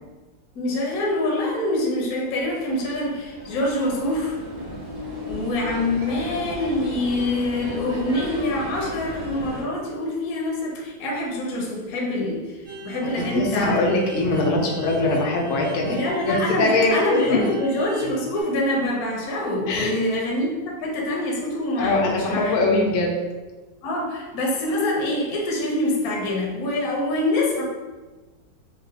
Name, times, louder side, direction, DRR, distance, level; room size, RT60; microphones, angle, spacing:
voice 1, 0.5-4.4 5.3-13.8 15.8-22.6 23.8-27.6, left 1 dB, 65° left, -2 dB, 1.0 m, -25 dB
sound 1, 2.0-9.6, equal, 50° right, 1.6 m, -35 dB
sound 2, 12.6-18.4, right 4 dB, 70° right, 2.4 m, -37 dB
voice 2, 13.3-16.0 16.3-17.6 19.7-19.9 21.8-23.2, left 2 dB, 85° left, 0 dB, 1.4 m, -22 dB
4.7 x 2.1 x 2.7 m, 1.2 s
omnidirectional pair, 2.2 m